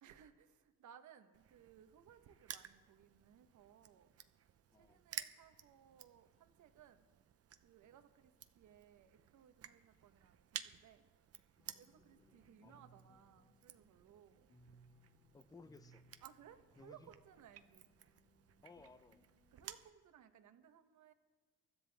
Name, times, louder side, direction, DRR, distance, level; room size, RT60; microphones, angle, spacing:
voice 1, 0.0-4.1 4.7-7.1 7.6-11.1 11.7-14.5 16.2-17.9 19.5-21.1, right 9 dB, 75° right, 1.1 m, -62 dB
Crushing, 1.3-19.9, right 9 dB, 50° right, 0.7 m, -55 dB
voice 2, 4.7-5.1 12.1-12.8 15.3-16.1 16.8-17.1 18.6-19.2, left 4 dB, 10° left, 0.6 m, -60 dB
sound 1, 11.6-19.6, equal, 55° left, 3.9 m, -69 dB
23.5 x 12.5 x 3.5 m
cardioid pair, 90°, 30 cm